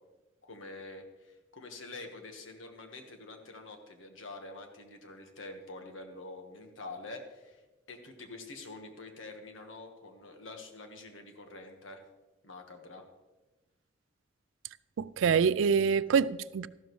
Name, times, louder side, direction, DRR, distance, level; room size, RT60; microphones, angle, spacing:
voice 1, 0.4-7.6 7.9-12.0 12.4-13.0 16.1-16.2, left 2 dB, 90° left, 1.5 m, -46 dB
voice 2, 15.0-16.7, right 6 dB, 80° right, 0.3 m, -26 dB
13.5 x 12.0 x 3.2 m
head